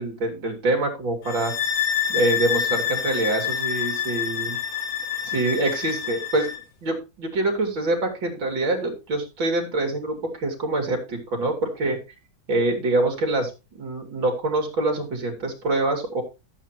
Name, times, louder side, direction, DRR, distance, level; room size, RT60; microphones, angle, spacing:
voice 1, 0.0-1.5 2.1-4.6 5.2-6.5 6.8-12.0 12.5-16.2, right 2 dB, 70° right, 3 dB, 3.9 m, -25 dB
sound 1, 1.2-6.6, left 8 dB, 50° left, 1.3 m, -27 dB
14.5 x 8.1 x 3.0 m, 0.28 s
omnidirectional pair, 2.2 m